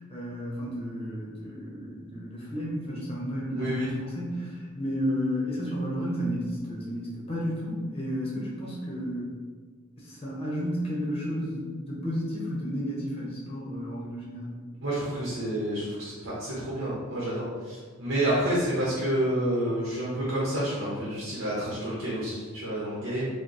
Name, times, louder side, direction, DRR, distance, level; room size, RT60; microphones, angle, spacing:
voice 1, 0.0-9.3 10.0-14.5, equal, 30° left, -4 dB, 1.0 m, -32 dB
voice 2, 3.6-3.9 14.8-23.3, right 1 dB, 60° right, -8 dB, 1.0 m, -29 dB
4.8 x 2.3 x 3.1 m, 1.5 s
head